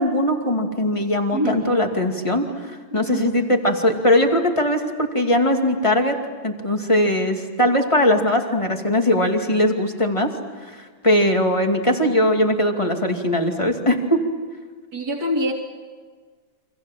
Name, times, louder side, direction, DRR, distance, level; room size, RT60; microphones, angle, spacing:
voice 1, 0.0-6.2 6.4-10.3 10.7-10.8 11.0-14.2, left 1 dB, 15° left, 3 dB, 2.4 m, -20 dB
voice 2, 2.9-3.5 14.9-15.5, equal, 55° right, -1 dB, 3.3 m, -25 dB
29.0 x 25.5 x 7.5 m, 1.5 s
omnidirectional pair, 2.2 m